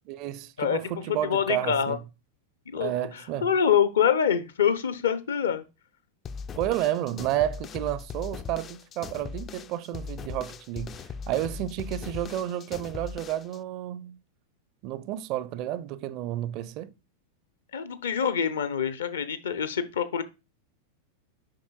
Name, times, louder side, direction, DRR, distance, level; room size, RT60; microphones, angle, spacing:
voice 1, 0.1-2.0 2.8-3.5 6.6-14.2 14.8-16.9, right 13 dB, 40° right, 0.4 m, -31 dB
voice 2, 0.6-2.0 2.7-5.6 17.7-20.2, left 8 dB, 65° left, 0.7 m, -26 dB
sound 1, 6.2-13.6, left 5 dB, 25° left, 0.3 m, -39 dB
7.6 x 5.5 x 2.3 m
figure-of-eight pair, 90°, 0 cm